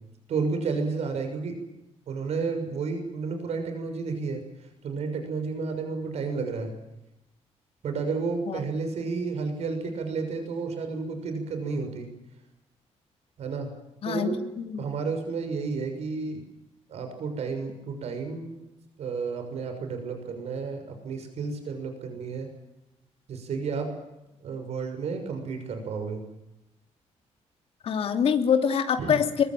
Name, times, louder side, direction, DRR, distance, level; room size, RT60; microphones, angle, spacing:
voice 1, 0.3-1.5 2.1-4.4 4.8-6.7 7.8-12.1 13.4-13.7 14.0-14.4 14.8-16.4 16.9-18.6 19.0-22.5 23.3-23.9 24.4-26.2 29.0-29.2, right 4 dB, 65° right, 6 dB, 6.4 m, -31 dB
voice 2, 14.0-14.8 27.8-29.4, left 7 dB, 55° left, 6 dB, 2.9 m, -25 dB
25.0 x 22.0 x 9.2 m, 0.92 s
cardioid pair, 155°, 12 cm